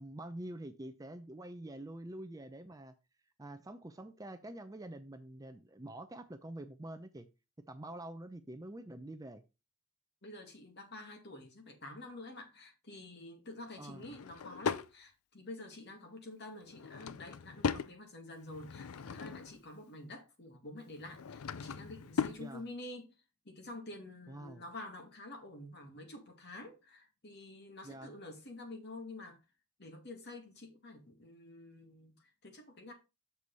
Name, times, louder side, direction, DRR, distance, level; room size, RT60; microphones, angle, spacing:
voice 1, 0.0-2.9 3.4-7.3 7.7-9.4 13.8-14.1 22.4-22.6 24.3-24.7 27.8-28.2, right 1 dB, 15° right, 0.5 m, -46 dB
voice 2, 10.2-23.1 23.5-29.4 29.8-32.9, left 2 dB, 50° left, 2.0 m, -48 dB
Drawer open or close / Wood, 13.9-14.9 16.6-17.9 18.4-19.6 20.9-22.4, left 6 dB, 80° left, 0.5 m, -38 dB
6.9 x 4.8 x 5.3 m
head